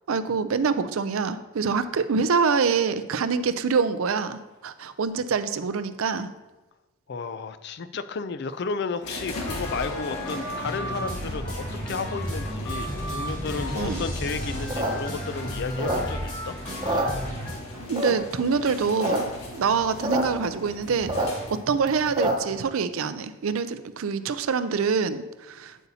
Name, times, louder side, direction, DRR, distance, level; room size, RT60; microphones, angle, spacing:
voice 1, 0.1-6.3 13.7-14.0 17.9-19.3 19.5-25.8, right 5 dB, 70° right, 12 dB, 0.5 m, -25 dB
voice 2, 7.1-16.6, left 4 dB, 50° left, 12 dB, 0.4 m, -33 dB
sound 1, 9.0-21.8, left 2 dB, 85° left, 1.6 m, -40 dB
sound 2, 9.4-17.5, equal, 20° left, 2.6 m, -33 dB
sound 3, 14.6-16.4 16.7-17.6 18.0-18.4 18.8-19.2 19.4-19.5 19.7-20.2 20.6-22.6, right 1 dB, 20° right, 0.9 m, -27 dB
8.4 x 8.0 x 2.8 m, 1.1 s
head